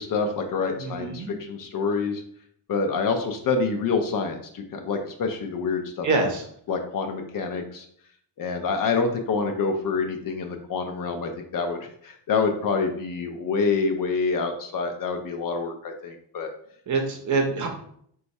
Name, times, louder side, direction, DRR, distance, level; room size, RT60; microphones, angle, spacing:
voice 1, 0.0-2.2 2.7-6.1 6.7-7.9 8.4-16.5, left 4 dB, 50° left, 5 dB, 0.5 m, -27 dB
voice 2, 0.8-1.3 6.0-6.4 16.9-17.7, right 3 dB, 40° right, 3 dB, 0.7 m, -25 dB
4.3 x 2.3 x 4.0 m, 0.64 s
cardioid pair, 165°, 45 cm